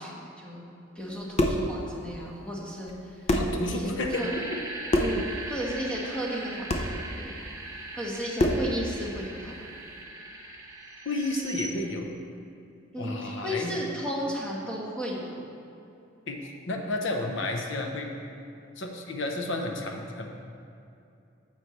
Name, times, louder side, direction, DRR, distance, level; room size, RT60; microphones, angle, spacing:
voice 1, 0.0-2.9 3.7-3.9 4.2-4.3 5.0-7.3 7.9-9.5 12.9-15.3, equal, 5° left, -4 dB, 1.4 m, -34 dB
sound 1, 1.1-1.7 2.9-3.0 3.3-3.6 4.9-5.2 6.7-6.9 8.4-8.7, left 1 dB, 35° left, 0.6 m, -25 dB
voice 2, 3.3-4.6 11.0-12.1 13.0-13.8 16.3-18.1 18.8-20.3, left 2 dB, 70° left, 3 dB, 0.9 m, -31 dB
sound 2, 4.1-11.7, right 2 dB, 15° right, 1.1 m, -40 dB
9.6 x 7.3 x 3.2 m, 2.6 s
head